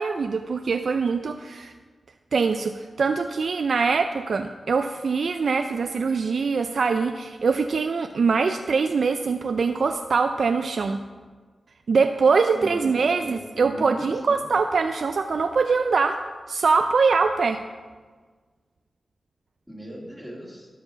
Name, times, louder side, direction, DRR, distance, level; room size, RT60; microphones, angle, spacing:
voice 1, 0.0-1.7 2.3-11.0 11.9-16.2 16.5-17.6, right 4 dB, 75° right, 7 dB, 0.3 m, -23 dB
voice 2, 12.5-14.4 19.7-20.7, equal, ahead, -3 dB, 2.7 m, -39 dB
12.0 x 4.8 x 5.7 m, 1.5 s
cardioid pair, 60°, 0 cm